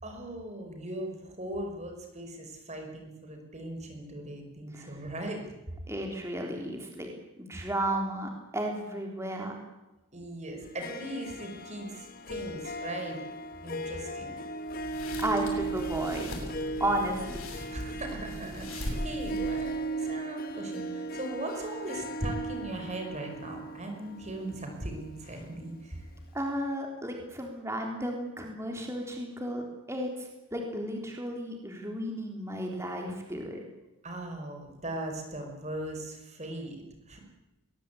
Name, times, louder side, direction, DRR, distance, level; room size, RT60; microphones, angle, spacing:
voice 1, 0.0-5.5 10.1-13.2 13.6-14.4 17.7-26.1 34.0-37.2, right 1 dB, 30° right, 3 dB, 5.1 m, -39 dB
voice 2, 5.9-7.1 7.4-9.6 15.2-16.4 16.8-17.5 26.3-29.6 29.9-33.6, right 1 dB, 10° right, 1 dB, 3.7 m, -33 dB
Harp, 10.6-26.0, right 2 dB, 40° left, 1.6 m, -37 dB
sound 1, 14.7-19.9, left 1 dB, 75° left, 7.3 m, -40 dB
21.5 x 21.5 x 8.5 m, 1.0 s
head